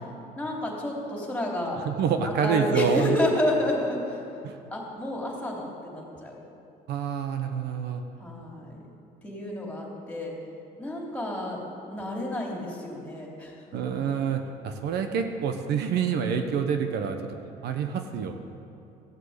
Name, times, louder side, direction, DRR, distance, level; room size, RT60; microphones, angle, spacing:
voice 1, 0.4-1.8 2.2-4.2 4.7-6.4 8.2-8.8 9.2-10.3 10.8-11.6 11.9-14.0, left 1 dB, 10° left, -2 dB, 3.4 m, -30 dB
voice 2, 1.8-3.2 4.4-4.6 6.9-8.0 13.7-17.4 17.6-18.3, right 7 dB, 75° right, 6 dB, 1.1 m, -27 dB
15.0 x 8.2 x 8.2 m, 2.7 s
cardioid pair, 110°, 17 cm